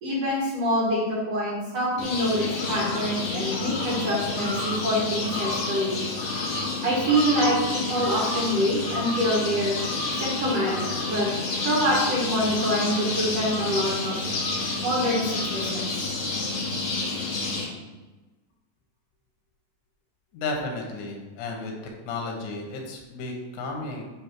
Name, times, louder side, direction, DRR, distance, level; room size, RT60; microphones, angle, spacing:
voice 1, 0.0-6.0 6.8-9.8 10.1-11.3 11.6-14.2 14.8-15.9, equal, 55° right, -5 dB, 1.9 m, -25 dB
sound 1, 2.0-17.6, left 3 dB, 55° left, 2.7 m, -29 dB
voice 2, 20.3-21.8 22.1-24.0, left 3 dB, 85° left, 1 dB, 3.5 m, -33 dB
9.4 x 3.3 x 5.9 m, 1.2 s
omnidirectional pair, 4.9 m